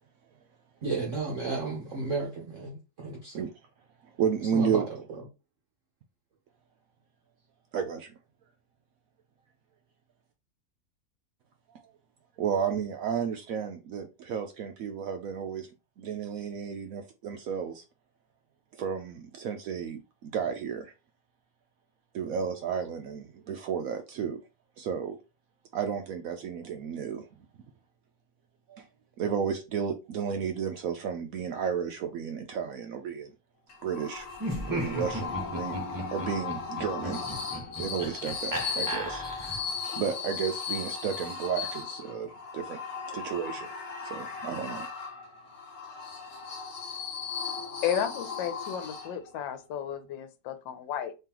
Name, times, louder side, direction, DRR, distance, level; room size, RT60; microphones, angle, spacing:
voice 1, 0.8-3.5 4.5-5.2, right 3 dB, 55° right, 1.0 m, -33 dB
voice 2, 4.2-4.8 7.7-8.1 11.7-11.9 12.4-15.7 16.0-17.8 18.7-20.9 22.1-24.4 24.8-25.2 25.7-27.3 28.7-28.8 29.2-33.3 33.8-34.3 34.6-37.2 37.8-39.2 40.0-42.8 43.1-43.7 44.0-44.9, right 7 dB, 80° right, 0.7 m, -32 dB
sound 1, 33.7-49.4, left 6 dB, 50° left, 1.0 m, -37 dB
Laughter, 34.3-39.8, right 1 dB, 20° right, 0.6 m, -36 dB
voice 3, 47.8-51.1, left 9 dB, 80° left, 1.4 m, -33 dB
3.7 x 3.2 x 2.9 m
omnidirectional pair, 2.0 m